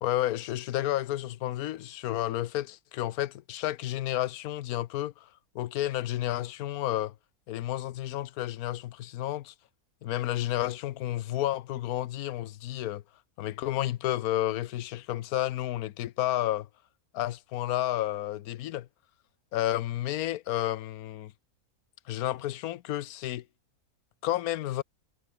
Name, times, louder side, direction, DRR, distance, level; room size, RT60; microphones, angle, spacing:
voice 1, 0.0-5.3 5.5-7.1 7.5-9.5 10.0-13.0 13.4-16.7 17.1-18.9 19.5-21.3 22.1-23.4 24.2-24.8, left 14 dB, 75° left, 1.1 m, -31 dB
omnidirectional pair, 1.6 m